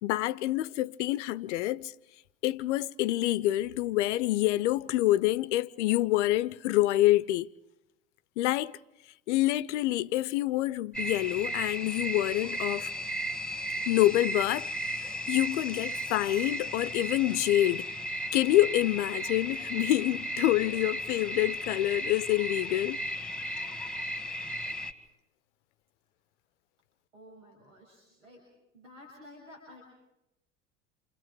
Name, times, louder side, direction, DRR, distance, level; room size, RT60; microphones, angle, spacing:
voice 1, 0.0-1.9 2.4-7.5 8.4-8.8 9.3-12.9 13.9-14.7 15.0-17.8 18.3-23.0, left 15 dB, 65° left, 0.8 m, -27 dB
sound 1, 10.9-24.9, equal, ahead, 2.2 m, -35 dB
voice 2, 27.1-28.4 28.7-29.8, left 1 dB, 80° right, 6.5 m, -52 dB
29.0 x 28.5 x 5.0 m
hypercardioid pair, 75°, 38 cm